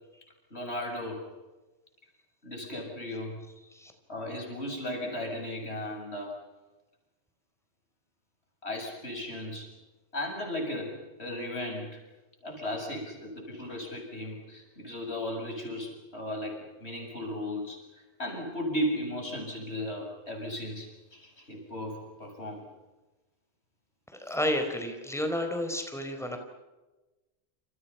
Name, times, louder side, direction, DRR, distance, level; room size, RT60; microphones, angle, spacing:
voice 1, 0.5-1.3 2.4-3.4 4.1-6.4 8.6-9.7 10.1-12.0 12.4-17.8 18.2-22.6, left 1 dB, 75° left, 2 dB, 8.2 m, -36 dB
voice 2, 24.2-26.4, left 1 dB, ahead, 5 dB, 4.3 m, -31 dB
29.0 x 29.0 x 5.8 m, 1.1 s
omnidirectional pair, 1.1 m